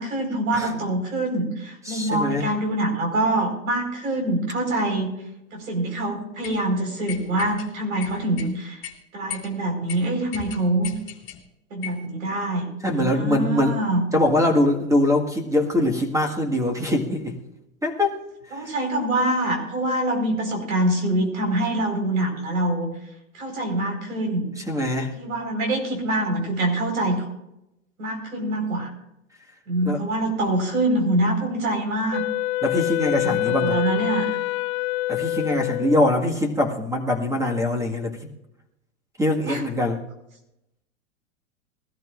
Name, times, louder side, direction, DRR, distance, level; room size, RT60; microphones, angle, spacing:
voice 1, 0.0-5.1 5.5-8.8 9.1-10.9 11.7-14.0 18.5-22.9 23.3-24.5 25.1-27.3 28.0-28.9 29.7-32.2 33.2-34.3 39.5-39.7, right 1 dB, 90° right, 2 dB, 4.9 m, -25 dB
voice 2, 1.9-2.5 12.8-13.7 14.1-17.4 17.8-18.2 24.6-25.1 29.9-30.0 32.6-33.8 35.1-38.2 39.2-40.0, left 1 dB, 10° right, 2 dB, 1.8 m, -23 dB
sound 1, 6.4-6.6 7.1-7.7 8.0-8.5 8.8-9.0 9.3-9.5 9.9-10.0 10.3-11.4 11.8-12.1, left 10 dB, 30° left, 2.4 m, -36 dB
Wind instrument woodwind instrument, 32.1-36.4, left 17 dB, 55° left, 0.5 m, -26 dB
20.5 x 13.5 x 2.6 m, 0.87 s
hypercardioid pair, 125°, 40 cm